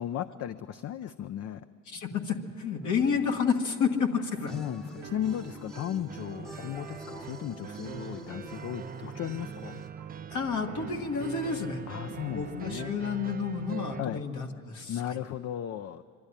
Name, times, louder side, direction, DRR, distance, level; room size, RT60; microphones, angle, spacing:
voice 1, 0.0-1.6 4.5-9.8 11.9-13.0 13.9-14.3 14.9-16.0, left 10 dB, 55° left, 11 dB, 0.5 m, -36 dB
voice 2, 1.9-4.7 5.0-5.1 10.3-11.8 12.3-15.2, left 6 dB, 75° left, 4 dB, 1.6 m, -30 dB
sound 1, 2.8-12.9, right 6 dB, 75° right, 1.0 m, -52 dB
sound 2, 4.5-9.9, equal, ahead, 0.8 m, -47 dB
sound 3, 6.1-14.0, right 8 dB, 30° right, 0.4 m, -42 dB
24.0 x 12.0 x 10.0 m, 2.5 s
cardioid pair, 90°, 30 cm